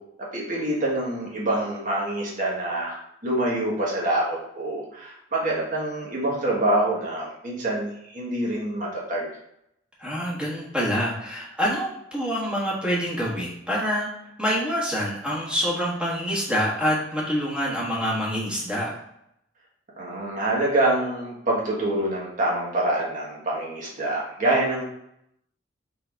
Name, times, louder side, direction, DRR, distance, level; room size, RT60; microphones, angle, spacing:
voice 1, 0.3-9.3 20.0-24.8, right 1 dB, 45° right, -4 dB, 1.4 m, -26 dB
voice 2, 10.0-14.1 14.4-19.0, equal, 5° right, -6 dB, 1.4 m, -26 dB
3.8 x 3.8 x 3.4 m, 0.77 s
head